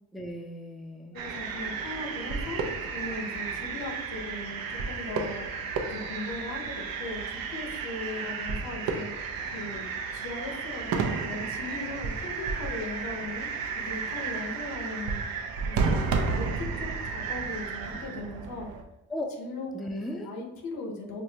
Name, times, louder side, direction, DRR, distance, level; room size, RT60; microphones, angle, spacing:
voice 1, 0.1-1.2 1.7-1.9 19.1-19.3 19.7-20.3, left 1 dB, ahead, 2 dB, 0.3 m, -36 dB
voice 2, 1.1-2.6 2.9-5.5 5.9-9.1 9.5-9.8 10.1-13.5 13.8-15.2 15.6-18.7 19.4-19.7 20.1-21.2, left 2 dB, 85° left, 1 dB, 0.9 m, -38 dB
sound 1, 1.2-18.8, right 5 dB, 80° right, 0.6 m, -32 dB
4.8 x 2.1 x 2.8 m, 0.91 s
cardioid pair, 95°, 34 cm